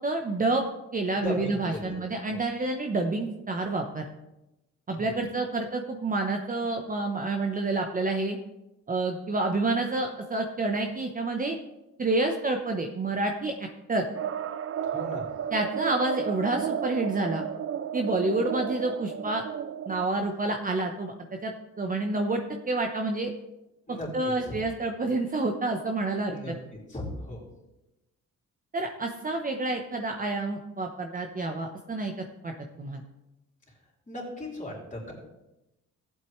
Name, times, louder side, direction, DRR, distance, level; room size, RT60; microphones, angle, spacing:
voice 1, 0.0-0.6 0.9-4.1 4.9-8.4 8.9-11.6 12.0-13.5 13.9-14.1 15.5-17.5 17.9-19.4 19.9-21.1 21.4-21.5 21.8-23.3 23.9-26.5 28.7-33.0, right 2 dB, 30° right, 3 dB, 0.9 m, -28 dB
voice 2, 1.2-2.0 2.3-2.4 5.0-5.1 14.9-15.2 23.9-24.5 26.3-26.5 26.9-27.4 34.1-35.1, left 1 dB, 25° left, -3 dB, 3.8 m, -37 dB
sound 1, 14.1-20.0, right 9 dB, 45° right, 0.5 m, -33 dB
14.5 x 8.1 x 3.2 m, 0.95 s
cardioid pair, 90°, 30 cm